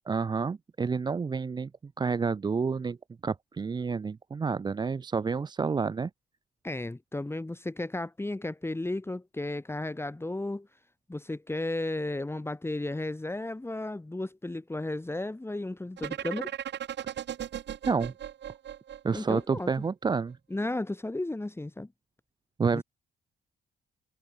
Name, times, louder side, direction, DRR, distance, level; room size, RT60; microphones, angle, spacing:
voice 1, 0.1-1.7 2.0-3.0 3.2-6.1 17.9-18.1 19.0-20.4 22.6-22.8, right 5 dB, 20° right, 0.4 m, -29 dB
voice 2, 6.6-10.7 11.1-16.5 19.1-19.7 20.5-21.9 22.7-22.8, left 2 dB, 10° left, 2.4 m, -34 dB
sound 1, 16.0-19.9, right 10 dB, 60° right, 1.9 m, -37 dB
cardioid pair, 90°, 20 cm